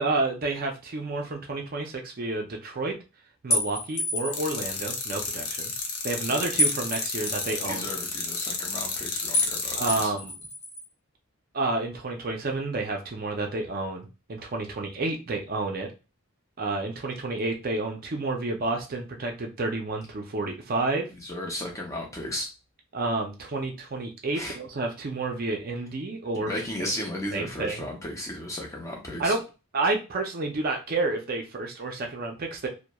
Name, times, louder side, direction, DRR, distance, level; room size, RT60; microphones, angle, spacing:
voice 1, 0.0-2.9 3.4-5.8 6.0-7.9 9.7-10.3 11.5-15.9 16.6-21.1 22.9-26.5 26.8-26.9 27.3-27.9 29.2-29.4 29.7-32.7, right 2 dB, 40° right, 2 dB, 0.4 m, -30 dB
sound 1, 3.5-4.5 6.6-7.6 9.3-9.6 9.9-10.8, left 1 dB, 35° left, 0.9 m, -28 dB
sound 2, 4.3-10.1, left 4 dB, 85° left, 0.7 m, -32 dB
voice 2, 7.7-10.1 21.1-22.5 24.3-24.6 26.5-29.4, left 1 dB, 15° left, 0 dB, 0.5 m, -35 dB
2.9 x 2.1 x 2.2 m, 0.29 s
head